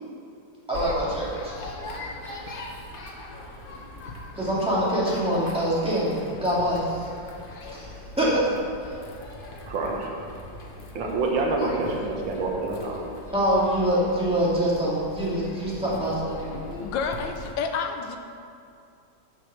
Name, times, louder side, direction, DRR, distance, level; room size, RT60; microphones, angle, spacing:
sound 1, 0.7-17.5, left 2 dB, 50° left, 0.6 m, -40 dB
voice 1, 0.7-1.5 4.4-6.9 7.7-7.9 8.2-8.4 8.8-9.0 13.3-16.5, equal, 5° right, -8 dB, 1.7 m, -24 dB
voice 2, 9.7-10.1 11.0-13.1, right 3 dB, 85° right, -1 dB, 1.9 m, -27 dB
voice 3, 16.8-18.2, left 5 dB, 80° left, 5 dB, 1.3 m, -29 dB
7.3 x 4.9 x 6.1 m, 2.4 s
omnidirectional pair, 2.1 m